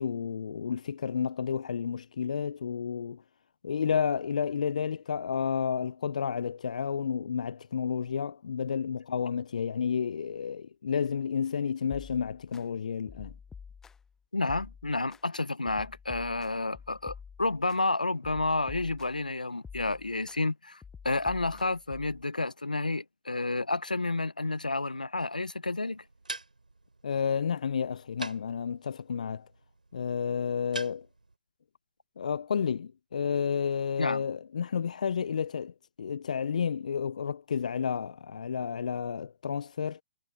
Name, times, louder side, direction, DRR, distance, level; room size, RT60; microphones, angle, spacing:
voice 1, 0.0-3.2 3.6-13.3 27.0-29.5 29.9-31.1 32.2-40.0, left 7 dB, 65° left, 0.5 m, -31 dB
sound 1, 11.9-12.6 13.1-14.1 14.5-15.2 15.7-17.8 18.2-19.3 19.6-20.4 20.8-22.2, left 6 dB, 10° left, 0.6 m, -48 dB
voice 2, 14.3-26.0 34.0-34.2, left 2 dB, 90° left, 1.0 m, -30 dB
sound 2, 25.9-31.3, right 2 dB, 85° right, 3.7 m, -45 dB
figure-of-eight pair, 130°, 4 cm